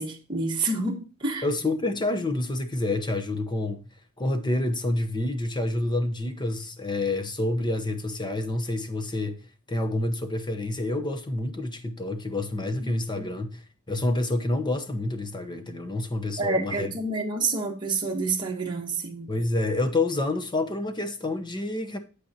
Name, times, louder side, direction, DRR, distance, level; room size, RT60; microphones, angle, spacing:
voice 1, 0.0-1.5 12.8-13.2 16.4-19.4, right 3 dB, 20° right, 1.4 m, -28 dB
voice 2, 1.4-3.8 4.2-9.4 9.7-13.6 13.9-16.9 19.3-22.0, left 2 dB, 20° left, 0.9 m, -28 dB
8.6 x 8.1 x 2.8 m
head